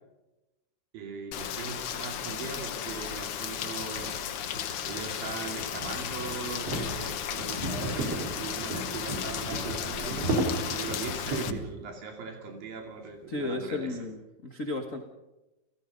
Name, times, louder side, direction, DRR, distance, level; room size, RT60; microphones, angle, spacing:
voice 1, 0.9-14.0, right 5 dB, 75° right, 3 dB, 4.4 m, -40 dB
Rain, 1.3-11.5, left 9 dB, 75° left, 1.3 m, -35 dB
sound 1, 2.9-3.0 3.7-11.7, right 1 dB, 40° right, 4.9 m, -34 dB
voice 2, 13.3-15.0, left 2 dB, 50° left, 3 dB, 0.9 m, -34 dB
30.0 x 16.0 x 5.3 m, 1.0 s
omnidirectional pair, 4.2 m